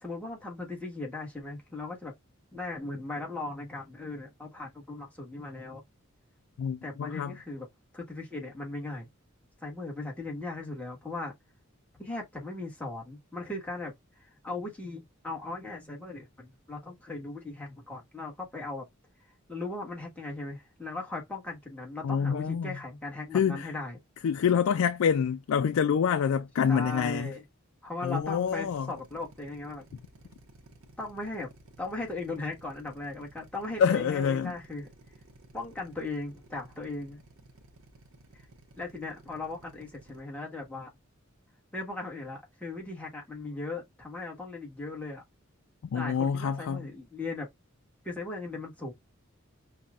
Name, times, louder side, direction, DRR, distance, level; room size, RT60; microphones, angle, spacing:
voice 1, 0.0-2.1 2.5-5.8 6.8-7.7 7.9-9.1 9.6-11.3 12.0-13.9 14.2-18.9 19.5-24.0 26.7-27.4 27.8-29.8 31.0-31.5 31.8-34.9 35.5-37.2 38.8-40.9 41.7-45.2 45.9-47.5 48.0-48.9, left 2 dB, 5° left, 1.3 m, -38 dB
voice 2, 6.6-7.3 22.0-22.8 23.3-23.7 24.2-27.3 28.0-28.9 33.8-34.5 45.8-46.9, left 7 dB, 80° left, 0.3 m, -27 dB
Drill, 28.2-40.2, right 2 dB, 85° right, 0.8 m, -55 dB
5.5 x 2.2 x 2.3 m
head